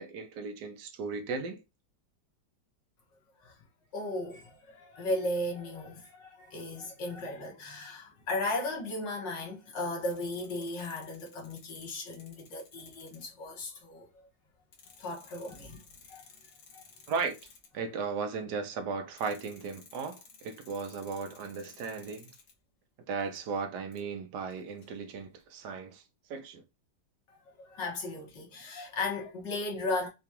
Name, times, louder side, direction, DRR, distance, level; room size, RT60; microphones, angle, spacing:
voice 1, 0.0-1.6 17.1-17.4 17.7-22.3 23.1-26.0 26.3-26.6, right 5 dB, 75° right, 1.3 m, -36 dB
voice 2, 3.9-14.1 15.0-15.8 16.1-16.3 16.7-16.8 27.3-30.1, left 2 dB, 80° left, 2.0 m, -36 dB
sound 1, 10.0-13.5 14.2-14.3 14.7-17.7 19.2-22.5 23.1-23.5 23.9-24.0 24.5-25.4, left 5 dB, 65° left, 1.4 m, -56 dB
4.9 x 2.3 x 2.8 m
omnidirectional pair, 1.9 m